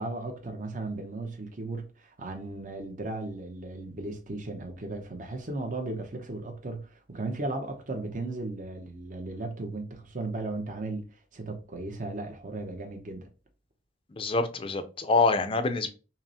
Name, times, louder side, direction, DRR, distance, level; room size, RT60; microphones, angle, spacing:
voice 1, 0.0-13.3, right 2 dB, 45° right, 0.7 m, -36 dB
voice 2, 14.1-15.9, left 3 dB, 30° left, 0.4 m, -26 dB
5.5 x 2.0 x 2.7 m
head